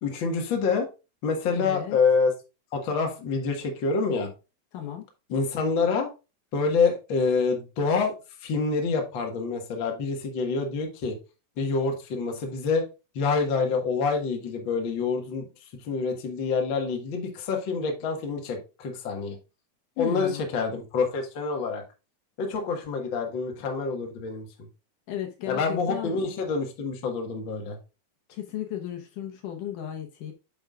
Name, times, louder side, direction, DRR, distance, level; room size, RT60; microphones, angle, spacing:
voice 1, 0.0-0.9 1.2-2.3 2.7-4.3 5.3-6.1 6.5-8.1 8.4-11.2 11.6-12.8 13.1-15.4 15.8-19.4 20.0-21.8 22.4-24.5 25.5-27.8, left 4 dB, 45° left, 1.7 m, -27 dB
voice 2, 1.5-2.0 4.7-5.1 20.0-20.4 25.1-26.2 28.3-30.3, left 11 dB, 70° left, 2.4 m, -34 dB
9.2 x 6.0 x 2.4 m
omnidirectional pair, 4.1 m